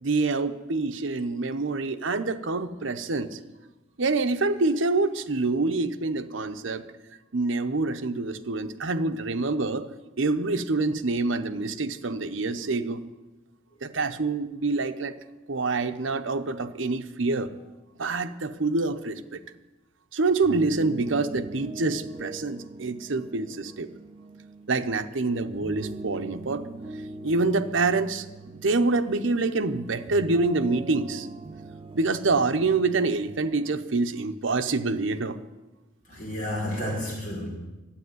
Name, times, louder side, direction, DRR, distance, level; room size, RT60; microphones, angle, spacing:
voice 1, 0.0-3.4 4.0-6.8 7.3-9.9 10.2-13.0 13.8-15.1 15.5-17.5 18.0-19.4 20.1-23.9 24.7-26.7 27.2-28.2 28.5-31.3 31.9-35.4, right 3 dB, 80° right, 8 dB, 0.8 m, -26 dB
sound 1, 20.3-33.7, right 3 dB, 30° right, 0.4 m, -41 dB
voice 2, 36.1-37.6, left 1 dB, 45° left, -3 dB, 5.5 m, -31 dB
12.0 x 8.6 x 9.5 m, 1.1 s
head